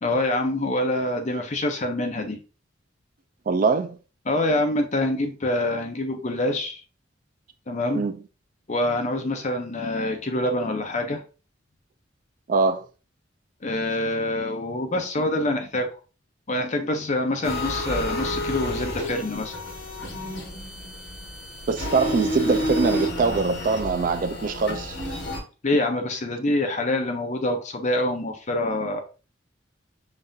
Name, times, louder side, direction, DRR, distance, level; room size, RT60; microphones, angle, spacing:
voice 1, 0.0-2.4 4.3-6.8 7.7-8.0 8.7-11.2 13.6-15.9 16.5-19.5 25.6-29.0, left 1 dB, 40° left, 0.7 m, -25 dB
voice 2, 3.5-4.0 7.9-8.2 12.5-12.9 21.7-25.0, right 4 dB, 45° right, 0.4 m, -23 dB
sound 1, 17.4-25.4, left 1 dB, 70° left, 1.6 m, -30 dB
5.3 x 2.5 x 2.7 m
head